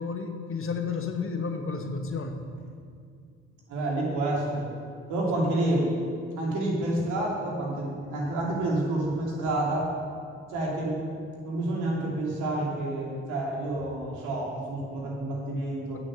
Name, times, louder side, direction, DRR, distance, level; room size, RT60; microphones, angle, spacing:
voice 1, 0.0-2.4 5.3-5.4 15.9-16.0, left 5 dB, 45° left, 5 dB, 1.2 m, -32 dB
voice 2, 3.7-4.7 5.1-5.9 6.4-9.9 10.5-11.0 11.4-16.0, right 1 dB, 75° right, -3 dB, 2.8 m, -29 dB
9.2 x 8.5 x 6.4 m, 2.3 s
hypercardioid pair, 50°, 30 cm